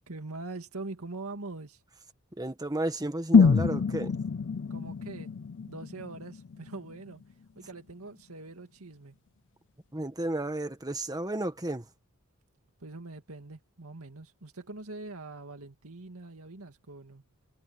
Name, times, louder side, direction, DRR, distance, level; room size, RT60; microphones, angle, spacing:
voice 1, 0.1-1.8 4.7-5.4 5.7-7.2 7.6-9.2 12.8-17.2, right 3 dB, 75° right, 2.2 m, -43 dB
voice 2, 2.4-4.2 9.9-11.9, right 1 dB, 15° right, 1.8 m, -33 dB
sound 1, 3.3-7.3 7.6-7.7, left 5 dB, 55° left, 0.5 m, -25 dB
head